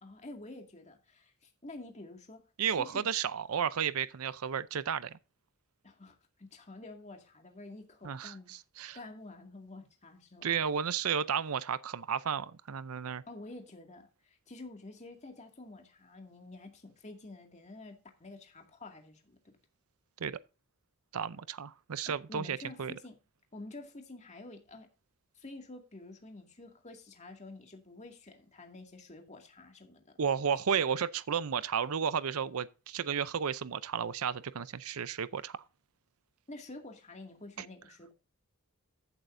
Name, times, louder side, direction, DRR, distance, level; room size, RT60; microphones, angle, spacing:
voice 1, 0.0-2.4 2.8-3.1 5.8-8.5 8.9-10.5 13.3-19.6 22.1-23.2 23.5-24.9 25.4-30.1 36.5-38.1, left 2 dB, 30° left, 2.2 m, -49 dB
voice 2, 2.6-5.2 8.0-9.0 10.4-13.2 20.2-20.4 21.1-22.9 30.2-35.6 37.6-37.7, right 7 dB, 80° right, 0.6 m, -33 dB
15.0 x 7.5 x 2.6 m
head